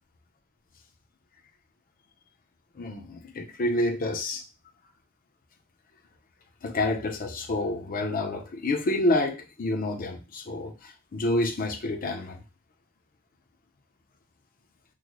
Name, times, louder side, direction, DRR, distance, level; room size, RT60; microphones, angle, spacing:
voice 1, 2.7-4.4 6.6-12.4, left 2 dB, 40° left, 5 dB, 0.6 m, -28 dB
3.1 x 2.0 x 3.7 m, 0.30 s
head